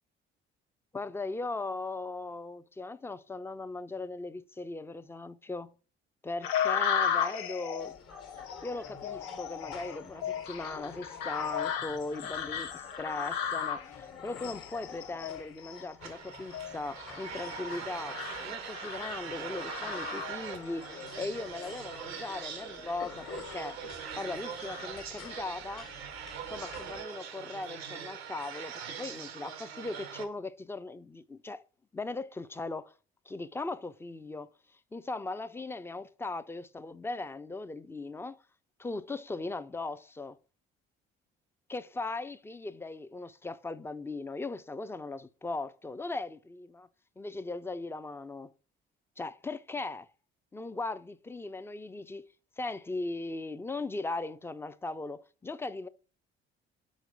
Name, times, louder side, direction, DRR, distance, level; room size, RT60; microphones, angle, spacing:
voice 1, 0.9-5.7 6.2-7.9 8.6-23.8 24.2-25.9 26.5-31.6 31.9-32.9 33.3-34.5 34.9-38.4 38.8-40.4 41.7-46.9 47.2-48.5 49.2-50.1 50.5-52.3 52.6-55.9, left 3 dB, 10° left, 0.4 m, -38 dB
sound 1, 6.4-20.7 21.2-21.8 22.3-22.6 23.1-23.8 24.2-25.4, left 8 dB, 75° left, 0.6 m, -36 dB
sound 2, 7.8-27.0, left 6 dB, 45° left, 1.3 m, -49 dB
sound 3, 16.0-30.3, right 8 dB, 90° right, 0.6 m, -42 dB
5.2 x 4.7 x 4.8 m
hypercardioid pair, 50°, 31 cm